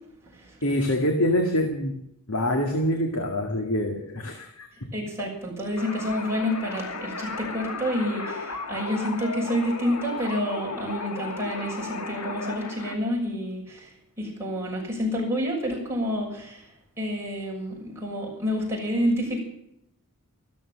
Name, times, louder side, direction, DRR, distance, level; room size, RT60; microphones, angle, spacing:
voice 1, 0.6-1.9 2.3-4.9, left 1 dB, 70° left, 4 dB, 2.1 m, -25 dB
voice 2, 4.9-13.9 14.2-16.6 17.0-19.4, equal, 10° right, -4 dB, 6.4 m, -28 dB
sound 1, 5.8-13.0, left 3 dB, 90° left, 1.9 m, -35 dB
14.0 x 13.0 x 7.4 m, 0.78 s
head